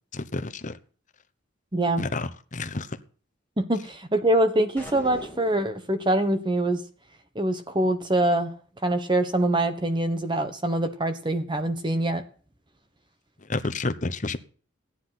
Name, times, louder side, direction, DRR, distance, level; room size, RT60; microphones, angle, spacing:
voice 1, 0.1-0.7 2.0-3.0 13.5-14.4, left 3 dB, 40° left, 1.0 m, -30 dB
voice 2, 1.7-2.0 3.6-6.8 7.3-8.5 8.8-12.2, right 1 dB, 25° right, 1.2 m, -24 dB
sound 1, 4.8-5.8, left 1 dB, 10° left, 3.3 m, -40 dB
14.5 x 10.0 x 5.9 m
head